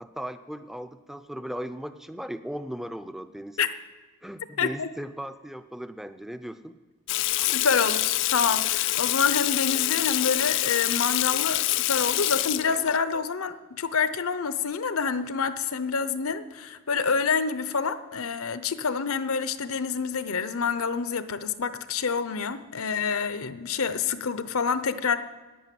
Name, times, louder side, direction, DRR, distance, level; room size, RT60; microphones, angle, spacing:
voice 1, 0.0-3.6 4.2-6.8 7.4-7.5, equal, ahead, 10 dB, 0.5 m, -37 dB
voice 2, 4.6-4.9 7.4-25.2, left 5 dB, 70° left, 13 dB, 0.7 m, -27 dB
Water tap faucet / Sink (filling or washing), 7.1-13.0, left 16 dB, 55° left, 0.3 m, -26 dB
11.0 x 9.1 x 9.2 m, 1.3 s
head